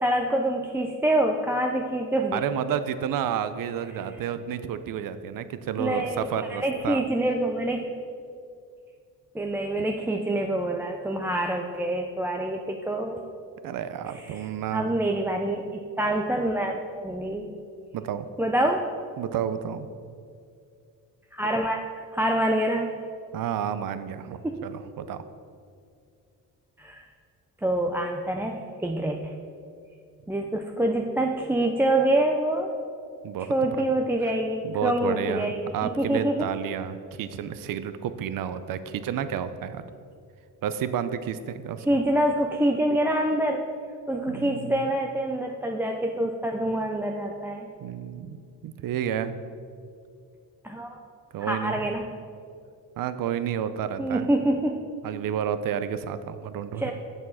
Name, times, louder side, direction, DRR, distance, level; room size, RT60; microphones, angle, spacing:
voice 1, 0.0-2.4 5.8-7.9 9.3-13.2 14.1-14.4 14.7-17.5 18.4-18.9 21.3-21.8 22.1-22.9 24.4-24.6 26.8-27.1 27.6-29.3 30.3-32.7 33.5-36.5 41.9-43.6 44.1-47.7 50.6-51.0 51.5-52.1 54.0-54.9 56.8-56.9, right 1 dB, 5° right, 2 dB, 0.4 m, -26 dB
voice 2, 2.3-7.0 13.6-15.0 17.9-18.3 19.2-19.9 23.3-25.2 33.2-33.5 34.6-39.8 40.6-41.9 44.3-44.9 47.8-48.4 48.6-49.4 51.3-51.9 53.0-54.3 55.0-56.9, right 9 dB, 65° right, 12 dB, 0.6 m, -31 dB
7.1 x 6.4 x 5.6 m, 2.3 s
cardioid pair, 100°, 36 cm